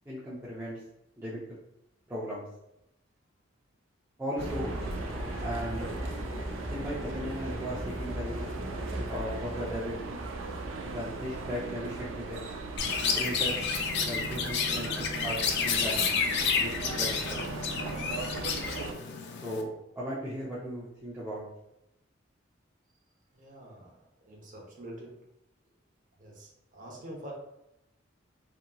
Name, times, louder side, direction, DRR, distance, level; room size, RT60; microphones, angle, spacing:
voice 1, 0.1-0.8 1.2-1.4 2.1-2.4 4.2-4.8 5.4-6.0 6.7-8.5 9.1-10.0 10.9-12.4 13.1-13.7 14.0-16.1 16.5-17.5 19.4-21.4, equal, 15° right, -9 dB, 0.5 m, -37 dB
sound 1, 4.3-12.4, equal, 10° left, 0.9 m, -39 dB
sound 2, 4.4-18.9, right 3 dB, 80° right, 0.4 m, -39 dB
Chirp tweet, 12.8-19.6, left 6 dB, 60° left, 0.3 m, -30 dB
voice 2, 23.3-25.1 26.2-27.3, right 1 dB, 45° right, -2 dB, 0.8 m, -46 dB
2.8 x 2.7 x 2.2 m, 0.85 s
head